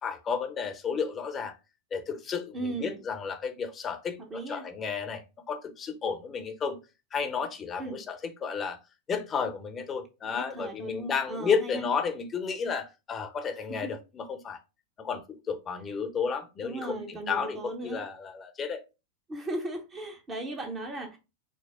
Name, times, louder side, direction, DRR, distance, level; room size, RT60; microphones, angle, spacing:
voice 1, 0.0-1.5 1.9-4.2 4.5-6.8 7.1-8.8 9.1-14.6 15.0-18.8, left 6 dB, 25° left, 0.8 m, -32 dB
voice 2, 2.5-3.0 4.2-4.7 7.8-8.0 10.2-11.9 13.7-13.9 16.6-18.0 19.3-21.2, right 2 dB, 20° right, 0.9 m, -37 dB
4.7 x 2.0 x 3.6 m
figure-of-eight pair, 90°, 0 cm